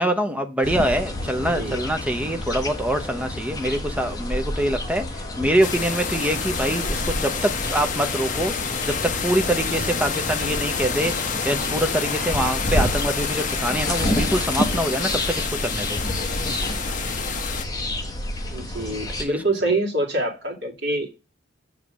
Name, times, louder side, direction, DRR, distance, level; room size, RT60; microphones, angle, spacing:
voice 1, 0.0-8.5 8.8-16.0 19.2-19.4, right 1 dB, 5° right, 0.7 m, -25 dB
sound 1, 0.6-19.2, left 1 dB, 20° left, 1.1 m, -29 dB
voice 2, 1.4-1.8 18.5-21.1, right 2 dB, 60° right, 2.1 m, -26 dB
sound 2, 5.6-17.6, left 6 dB, 40° left, 0.7 m, -28 dB
7.0 x 3.3 x 6.1 m
head